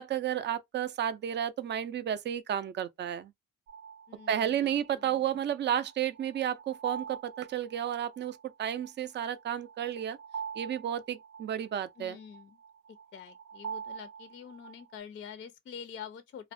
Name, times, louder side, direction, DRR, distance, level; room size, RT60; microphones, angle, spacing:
voice 1, 0.0-3.3 4.3-10.2 10.6-12.2, right 10 dB, 40° right, 0.4 m, -32 dB
sound 1, 3.7-15.0, right 7 dB, 75° right, 0.8 m, -44 dB
voice 2, 4.1-5.2 12.0-12.6 13.1-16.5, left 7 dB, 40° left, 0.4 m, -46 dB
2.4 x 2.0 x 2.5 m
cardioid pair, 90°, 30 cm